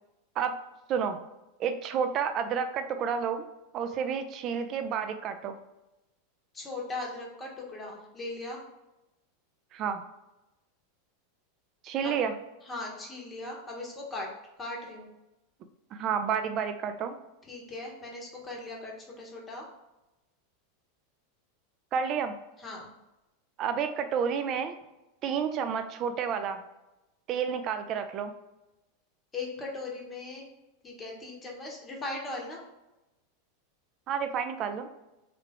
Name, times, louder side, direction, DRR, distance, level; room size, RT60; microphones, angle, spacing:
voice 1, 1.6-3.4 3.7-5.6 9.7-10.0 11.8-12.3 15.9-17.1 21.9-22.4 23.6-24.7 25.2-26.6 27.3-28.3 34.1-34.9, right 7 dB, 40° right, 8 dB, 0.4 m, -30 dB
voice 2, 6.5-8.6 12.0-12.1 12.6-14.3 14.6-15.1 17.5-19.7 22.6-22.9 29.3-30.5 30.8-32.6, left 2 dB, 20° left, -1 dB, 0.9 m, -39 dB
3.2 x 2.4 x 3.3 m, 0.97 s
hypercardioid pair, 90°, 0 cm